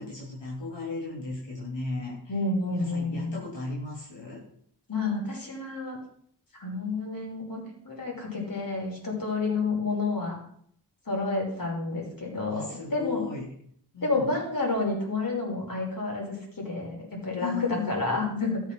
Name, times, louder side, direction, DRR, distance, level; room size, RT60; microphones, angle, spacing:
voice 1, 0.0-2.2 2.7-4.4 12.5-13.5 13.9-14.3 17.4-18.1, left 3 dB, 85° left, -5 dB, 3.4 m, -35 dB
voice 2, 2.3-3.4 4.9-6.0 6.5-10.4 11.1-13.2 14.0-18.6, left 3 dB, 50° left, -1 dB, 5.3 m, -30 dB
13.5 x 7.4 x 6.2 m, 0.65 s
cardioid pair, 50°, 42 cm